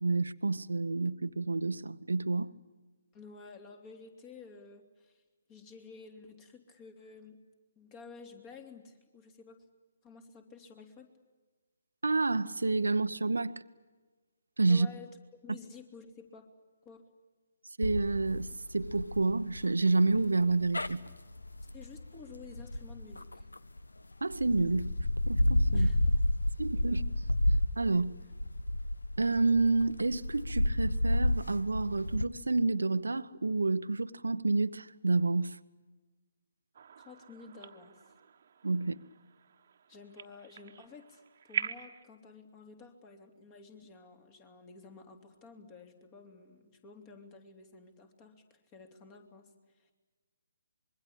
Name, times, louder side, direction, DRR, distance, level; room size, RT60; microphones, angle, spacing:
voice 1, 0.0-2.5 12.0-13.6 14.6-14.9 15.5-15.6 17.8-21.0 24.2-24.9 25.3-25.9 26.6-27.0 27.8-28.1 29.2-35.6 38.6-39.0, right 3 dB, 75° right, 0.9 m, -29 dB
voice 2, 3.1-5.2 5.5-7.4 7.8-9.6 10.0-11.1 14.7-15.1 15.4-16.5 16.8-17.0 21.7-23.5 25.7-26.1 26.9-27.0 27.9-28.0 37.0-38.1 39.9-49.9, left 4 dB, 25° left, 3.1 m, -52 dB
sound 1, 17.8-23.8 24.3-32.2, left 1 dB, 80° left, 1.1 m, -31 dB
sound 2, 36.7-42.0, right 7 dB, 50° right, 1.4 m, -43 dB
25.5 x 22.5 x 8.7 m
figure-of-eight pair, 135°, 0 cm